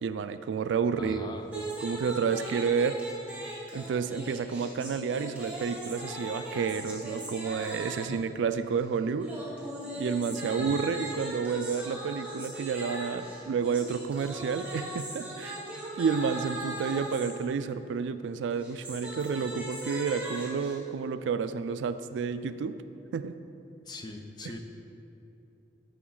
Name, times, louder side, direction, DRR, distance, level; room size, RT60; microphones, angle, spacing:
voice 1, 0.0-3.0 3.7-9.3 10.0-15.6 16.0-22.8 23.1-23.4, right 6 dB, 90° right, 12 dB, 0.3 m, -30 dB
voice 2, 1.0-1.5 8.1-8.2 10.6-10.8 23.8-24.6, left 2 dB, 25° left, 4 dB, 0.5 m, -40 dB
sound 1, 1.5-8.2 9.2-17.3 18.5-20.7, right 1 dB, 10° right, 1.3 m, -39 dB
10.0 x 5.1 x 3.8 m, 2.8 s
head